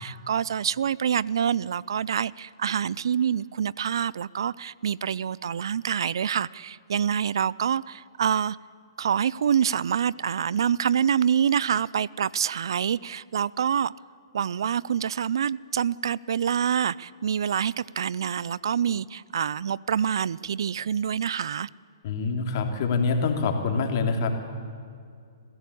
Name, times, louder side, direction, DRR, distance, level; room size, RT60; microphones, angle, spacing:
voice 1, 0.0-8.6 9.0-13.9 14.3-21.7, right 8 dB, 70° right, 0.4 m, -26 dB
voice 2, 22.0-24.4, left 4 dB, 50° left, 2.8 m, -25 dB
22.0 x 16.0 x 8.5 m
hypercardioid pair, 140°, 2 cm